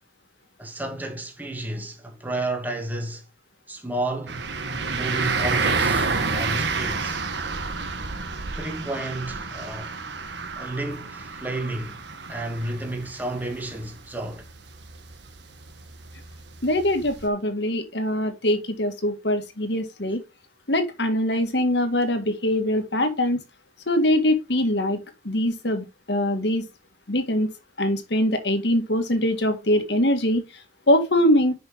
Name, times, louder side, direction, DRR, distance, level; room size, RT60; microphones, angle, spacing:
voice 1, 0.6-3.2 3.7-4.5 4.9-7.2 8.4-9.9 10.6-12.0 12.3-14.5, right 1 dB, 10° right, 2.0 m, -31 dB
sound 1, 4.3-17.3, right 4 dB, 80° right, 1.6 m, -29 dB
voice 2, 16.6-20.2 20.7-23.4 23.9-25.0 25.2-26.7 27.1-27.5 27.8-30.4 30.9-31.5, left 1 dB, 70° left, 1.8 m, -23 dB
10.5 x 5.6 x 3.5 m
head